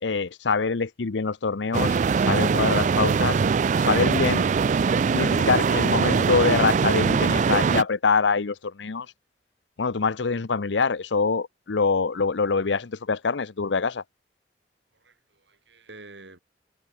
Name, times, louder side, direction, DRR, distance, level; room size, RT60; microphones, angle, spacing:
voice 1, 0.0-3.4 3.8-4.4 5.1-9.1 9.8-14.0, left 4 dB, 90° left, 0.7 m, -25 dB
sound 1, 1.7-7.8, right 5 dB, 45° right, 0.3 m, -22 dB
voice 2, 14.9-16.4, right 2 dB, 85° right, 7.6 m, -48 dB
head